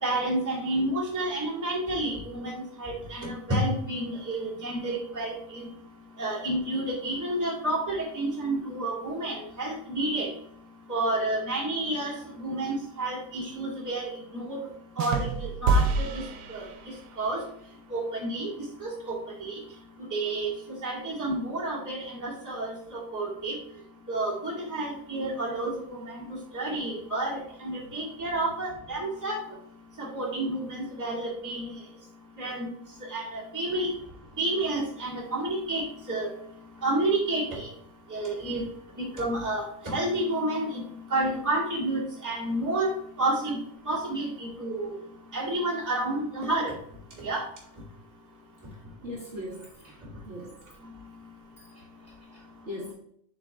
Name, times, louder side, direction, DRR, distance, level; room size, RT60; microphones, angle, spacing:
voice 1, 0.0-5.7 6.2-10.3 10.9-14.6 15.0-16.2 16.5-17.4 17.9-18.5 18.8-19.6 20.1-23.6 24.1-29.4 30.0-31.7 32.4-32.7 33.1-33.9 34.4-36.3 36.8-37.7 38.1-38.6 39.0-40.8 41.1-42.9 43.2-43.6 43.9-44.9 45.3-46.7 47.2-47.4, right 1 dB, 10° right, -6 dB, 2.1 m, -30 dB
sound 1, 15.0-17.2, right 3 dB, 80° right, 1.4 m, -27 dB
voice 2, 48.7-50.6 51.6-52.9, left 1 dB, 40° right, -4 dB, 2.0 m, -42 dB
7.2 x 5.1 x 3.5 m, 0.68 s
omnidirectional pair, 1.8 m